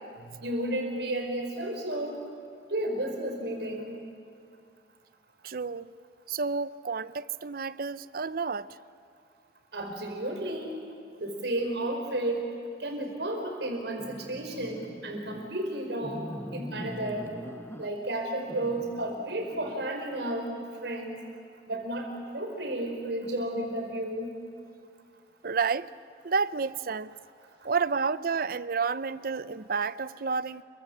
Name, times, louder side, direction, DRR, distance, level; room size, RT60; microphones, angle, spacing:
voice 1, 0.4-2.2 2.7-4.0 9.7-10.7 11.2-12.4 12.8-16.2 16.5-17.3 17.8-20.5 20.8-21.2 21.7-24.3, right 1 dB, 75° right, 4.9 m, -32 dB
voice 2, 5.4-5.9 6.3-8.8 25.4-25.9 26.2-27.1 27.6-30.6, right 5 dB, 55° right, 0.6 m, -30 dB
sound 1, 14.0-15.5 16.0-18.1 18.5-19.9, left 1 dB, 15° left, 0.7 m, -42 dB
28.0 x 24.0 x 7.4 m
head